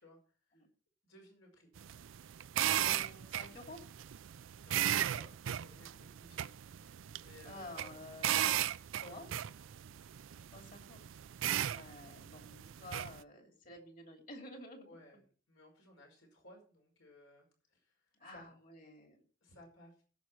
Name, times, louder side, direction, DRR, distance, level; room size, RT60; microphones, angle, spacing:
voice 1, 0.0-0.6 1.0-1.7 4.6-8.0 8.9-9.8 14.9-18.5 19.4-20.0, left 1 dB, 75° left, 1 dB, 5.2 m, -59 dB
sound 1, 1.8-13.2, right 11 dB, 75° right, 0.4 m, -36 dB
voice 2, 2.7-3.8 7.4-8.6 9.1-9.3 10.5-11.0 11.7-14.9 18.2-19.2, left 1 dB, 40° left, 3 dB, 2.8 m, -51 dB
17.5 x 6.3 x 4.5 m, 0.40 s
head